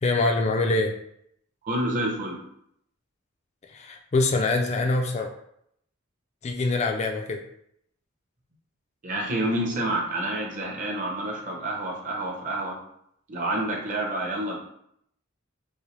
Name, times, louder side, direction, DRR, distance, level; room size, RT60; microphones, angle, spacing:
voice 1, 0.0-1.0 3.7-5.3 6.4-7.4, left 2 dB, 35° left, 4 dB, 0.4 m, -24 dB
voice 2, 1.6-2.4 9.0-12.8 13.3-14.6, right 1 dB, 40° right, -1 dB, 0.9 m, -28 dB
5.4 x 2.1 x 3.3 m, 0.71 s
head